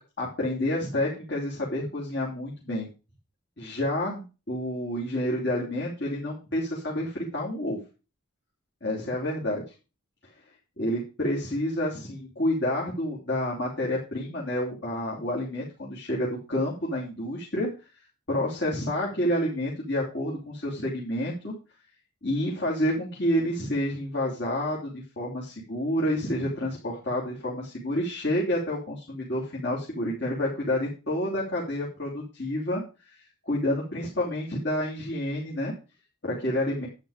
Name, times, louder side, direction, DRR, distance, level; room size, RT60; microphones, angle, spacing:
voice 1, 0.2-2.9 3.6-7.8 8.8-9.7 10.8-17.7 18.3-21.5 22.2-32.8 33.4-35.7 36.2-36.9, left 1 dB, 55° left, -4 dB, 3.4 m, -29 dB
11.0 x 8.9 x 5.0 m, 0.32 s
head